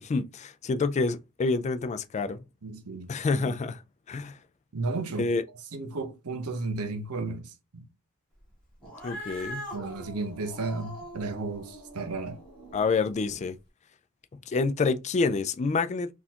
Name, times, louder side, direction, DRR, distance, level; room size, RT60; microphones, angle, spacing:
voice 1, 0.0-2.4 3.1-3.8 4.1-4.4 5.2-5.4 9.0-9.6 12.7-13.6 14.3-16.1, left 4 dB, 30° left, 0.3 m, -27 dB
voice 2, 2.6-3.1 3.4-3.6 4.7-5.3 5.7-7.8 9.7-12.4, right 3 dB, 75° right, 0.7 m, -33 dB
Cat, 8.8-13.4, equal, 5° left, 1.4 m, -43 dB
4.0 x 2.5 x 2.8 m
head